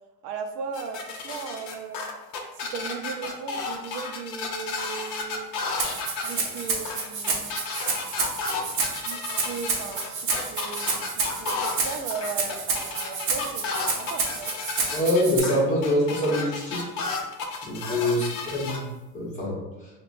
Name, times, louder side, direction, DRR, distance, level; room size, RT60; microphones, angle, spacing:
voice 1, 0.2-2.1 2.6-5.5 6.2-7.6 9.1-14.5 17.9-18.1, right 5 dB, 65° right, 5 dB, 0.4 m, -37 dB
sound 1, 0.7-18.8, left 4 dB, 60° left, 0.6 m, -33 dB
Rattle (instrument), 5.8-15.4, right 4 dB, 40° right, 0.8 m, -29 dB
voice 2, 14.9-16.9 17.6-18.8 19.1-19.9, left 1 dB, 20° left, -5 dB, 1.0 m, -25 dB
5.5 x 2.2 x 2.5 m, 1.0 s
cardioid pair, 165°, 33 cm